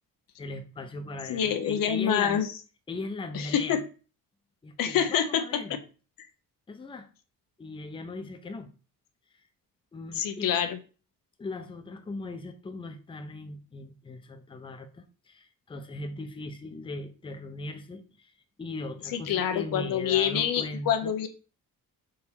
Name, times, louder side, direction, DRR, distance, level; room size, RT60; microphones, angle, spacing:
voice 1, 0.4-2.5 2.9-3.8 4.6-5.8 6.7-7.1 7.6-8.7 9.9-10.7 11.4-18.3 18.6-21.2, left 2 dB, 15° left, 6 dB, 0.5 m, -39 dB
voice 2, 1.3-2.5 3.3-3.8 4.8-5.4 10.2-10.8 19.3-21.3, left 9 dB, 75° left, 9 dB, 0.7 m, -26 dB
3.7 x 2.8 x 4.3 m, 0.36 s
cardioid pair, 105°, 34 cm